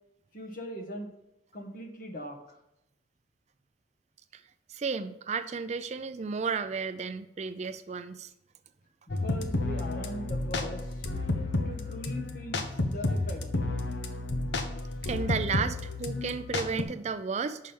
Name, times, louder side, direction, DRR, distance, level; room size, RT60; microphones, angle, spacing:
voice 1, 0.3-1.1 1.5-2.6 9.1-11.1 11.6-13.4, equal, 50° left, 3 dB, 1.4 m, -40 dB
voice 2, 4.7-8.3 15.0-17.6, right 5 dB, 40° right, 12 dB, 0.4 m, -33 dB
sound 1, 9.1-16.8, left 2 dB, 80° left, 0.9 m, -31 dB
6.2 x 5.7 x 7.0 m, 0.86 s
head